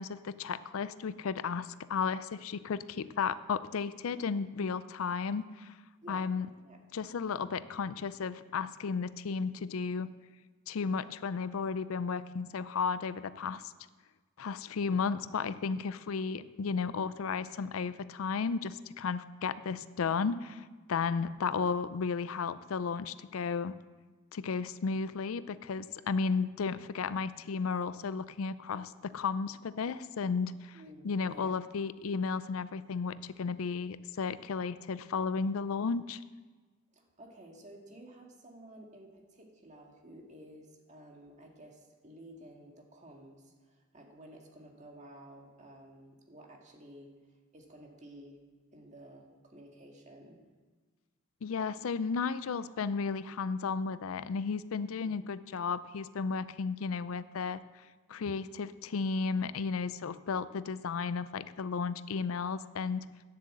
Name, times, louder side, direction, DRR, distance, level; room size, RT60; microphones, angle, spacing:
voice 1, 0.0-5.7 6.1-6.5 6.9-10.1 10.7-13.7 14.4-23.7 24.3-30.8 31.0-36.2 51.4-57.6 58.1-63.1, left 5 dB, 90° left, 15 dB, 0.5 m, -34 dB
voice 2, 30.7-31.5 36.9-47.1 47.5-48.4 48.7-50.4 55.0-55.1, right 1 dB, 35° right, 1 dB, 1.9 m, -53 dB
9.6 x 7.9 x 7.7 m, 1.3 s
head